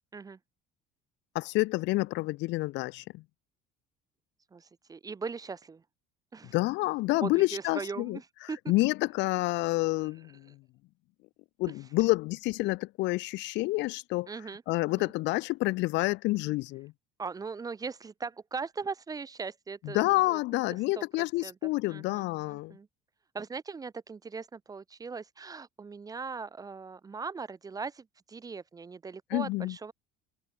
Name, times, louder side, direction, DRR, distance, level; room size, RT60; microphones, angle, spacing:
voice 1, 1.3-3.2 6.5-10.6 11.6-14.3 14.7-16.9 19.8-22.8 29.3-29.8, left 21 dB, 70° left, 1.5 m, -29 dB
voice 2, 4.5-5.8 6.3-6.5 7.2-8.9 14.3-14.6 15.0-15.1 17.2-20.4 21.0-21.1 21.4-21.5 21.9-22.9 23.3-29.9, right 5 dB, 20° right, 0.9 m, -39 dB
cardioid pair, 140°, 19 cm